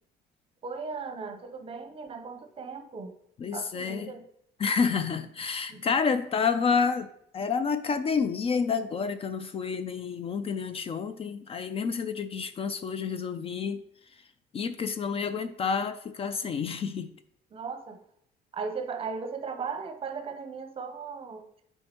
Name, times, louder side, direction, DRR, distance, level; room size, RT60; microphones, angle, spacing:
voice 1, 0.6-3.1 3.5-4.2 5.7-5.8 17.5-18.0 18.5-21.5, right 5 dB, 35° right, 8 dB, 0.7 m, -37 dB
voice 2, 3.4-4.1 4.6-13.8 14.5-17.1, left 5 dB, 35° left, 12 dB, 0.3 m, -29 dB
7.4 x 4.6 x 2.9 m, 0.70 s
cardioid pair, 110°, 17 cm